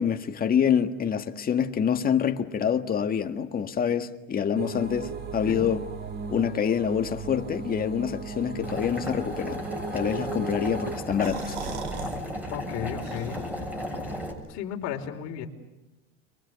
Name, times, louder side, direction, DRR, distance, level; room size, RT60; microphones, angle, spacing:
voice 1, 0.0-5.8 6.3-9.6 9.9-11.6, left 8 dB, 30° left, 1.7 m, -26 dB
sound 1, 4.6-11.0, right 4 dB, 30° right, 2.4 m, -36 dB
Boiling, 8.6-14.3, equal, 5° right, 7.1 m, -35 dB
sound 2, 10.9-12.2 12.5-12.6 13.0-13.7, right 6 dB, 85° right, 4.7 m, -39 dB
voice 2, 12.5-13.5 14.5-15.5, left 9 dB, 55° left, 4.5 m, -34 dB
30.0 x 23.5 x 8.2 m
supercardioid pair, 120°, 32 cm